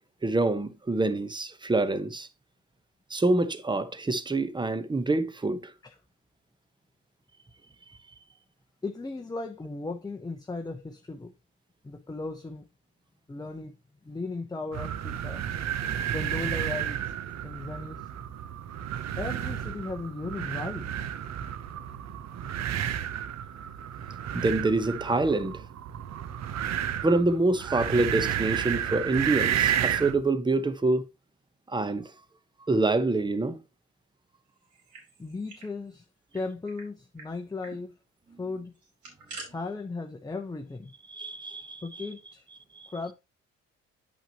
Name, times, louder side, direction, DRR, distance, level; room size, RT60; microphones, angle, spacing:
voice 1, 0.2-2.3 3.1-5.7 24.3-25.6 27.0-31.1 31.7-32.1 32.7-33.6 41.1-42.1 42.8-42.9, right 2 dB, 15° right, 0.9 m, -26 dB
voice 2, 8.8-11.3 11.8-12.7 13.3-13.7 14.0-15.4 16.1-17.0 17.4-18.1 19.2-20.9 35.2-36.0 36.3-38.0 38.4-38.7 39.5-40.9 41.8-42.5 42.9-43.1, left 3 dB, 15° left, 0.8 m, -36 dB
sound 1, 14.7-30.2, right 10 dB, 60° right, 0.7 m, -32 dB
sound 2, 34.6-35.7 36.0-36.1 36.3-36.9 37.2-37.3 37.6-37.8 38.8-39.5, right 3 dB, 75° right, 4.0 m, -45 dB
9.0 x 5.6 x 2.9 m
cardioid pair, 90°, 30 cm